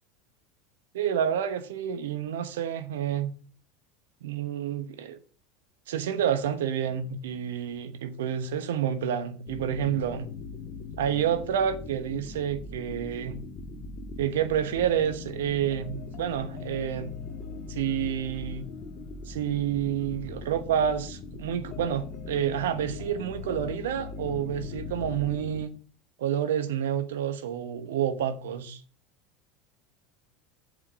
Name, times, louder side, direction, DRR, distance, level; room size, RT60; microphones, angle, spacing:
voice 1, 0.9-3.3 4.2-5.2 5.9-10.3 11.0-13.4 14.2-17.1 17.7-18.6 19.3-25.7 26.2-28.8, right 9 dB, 70° right, 1.0 m, -29 dB
sound 1, 9.5-25.7, left 4 dB, 40° left, 1.5 m, -40 dB
7.3 x 5.2 x 7.3 m
figure-of-eight pair, 80°, 0 cm